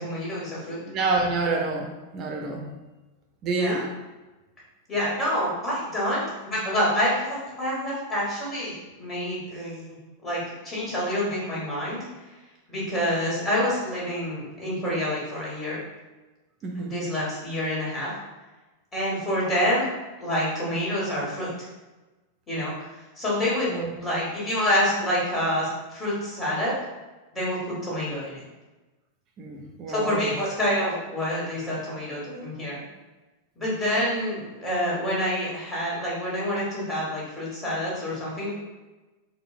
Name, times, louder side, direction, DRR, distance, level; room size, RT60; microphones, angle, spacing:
voice 1, 0.0-0.8 3.4-3.8 4.9-10.0 10.2-12.0 12.7-15.8 16.7-18.1 18.9-19.9 20.2-21.5 22.5-22.7 23.2-23.7 24.0-26.7 27.3-28.4 29.9-32.8 33.6-38.5, equal, 20° left, -7 dB, 1.5 m, -27 dB
voice 2, 0.9-1.9 2.1-2.7 3.4-3.9 16.6-17.0 23.7-23.9 29.4-30.3, right 3 dB, 35° right, 1 dB, 0.5 m, -27 dB
4.2 x 2.1 x 2.5 m, 1.1 s
figure-of-eight pair, 90°, 0 cm